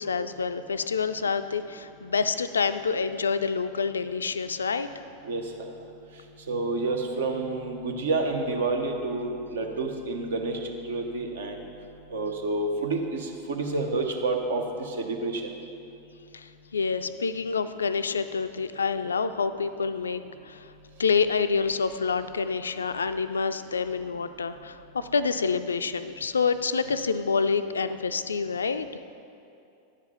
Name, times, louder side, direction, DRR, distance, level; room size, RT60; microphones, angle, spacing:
voice 1, 0.0-4.9 16.3-20.7 21.0-28.9, left 5 dB, 70° left, 11 dB, 0.3 m, -27 dB
voice 2, 6.5-11.6 12.1-15.4, right 3 dB, 65° right, 3 dB, 0.9 m, -29 dB
10.0 x 4.9 x 5.5 m, 2.6 s
figure-of-eight pair, 90°, 0 cm